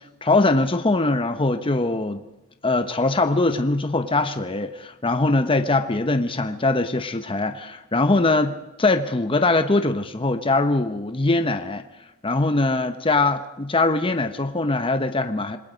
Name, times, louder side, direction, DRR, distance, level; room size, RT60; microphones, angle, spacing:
voice 1, 0.2-2.2 2.6-11.8 12.2-15.6, left 2 dB, 25° left, 0.9 m, -22 dB
27.0 x 21.0 x 5.1 m
head